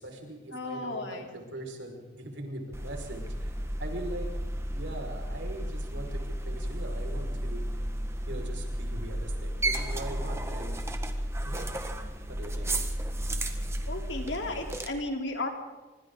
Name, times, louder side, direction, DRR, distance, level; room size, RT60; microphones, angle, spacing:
voice 1, 0.0-4.3 4.7-7.6 8.3-10.8 11.4-11.8 12.3-12.8, right 1 dB, 75° right, 2 dB, 5.4 m, -41 dB
voice 2, 0.5-1.3 13.9-15.5, left 2 dB, 70° left, 3 dB, 3.7 m, -34 dB
sound 1, 2.7-14.9, right 1 dB, 15° right, 1.6 m, -33 dB
26.0 x 25.0 x 4.0 m, 1.3 s
head